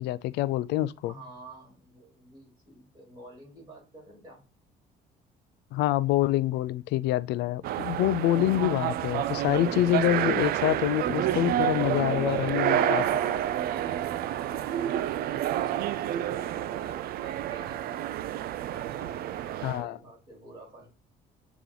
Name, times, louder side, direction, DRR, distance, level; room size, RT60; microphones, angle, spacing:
voice 1, 0.0-1.1 5.7-13.0 19.6-20.0, left 14 dB, 85° left, 0.4 m, -26 dB
voice 2, 1.0-4.4 12.1-18.1 18.7-20.9, right 2 dB, 25° right, 3.8 m, -48 dB
sound 1, 7.6-19.8, right 12 dB, 65° right, 0.4 m, -29 dB
8.1 x 3.0 x 3.9 m
cardioid pair, 110°, 17 cm